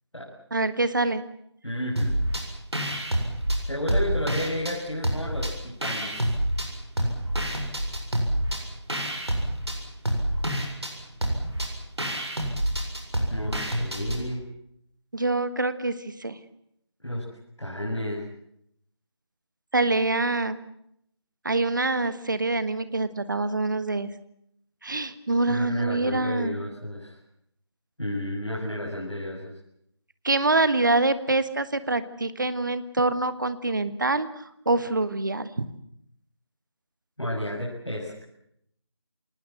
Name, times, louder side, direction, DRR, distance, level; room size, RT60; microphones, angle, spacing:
voice 1, 0.5-1.2 15.1-16.4 19.7-20.6 21.4-24.1 24.8-26.6 30.2-35.7, right 2 dB, 45° right, 13 dB, 1.5 m, -25 dB
voice 2, 1.6-2.1 3.6-6.3 13.3-14.4 17.0-17.2 17.6-18.2 25.5-27.2 28.0-29.6 37.2-38.2, left 1 dB, 80° left, -3 dB, 7.1 m, -32 dB
sound 1, 2.0-2.4 2.7-4.8 5.0-6.7 7.0-14.2, right 1 dB, 65° right, 7.4 m, -27 dB
26.0 x 19.5 x 7.7 m, 0.72 s
figure-of-eight pair, 165°, 15 cm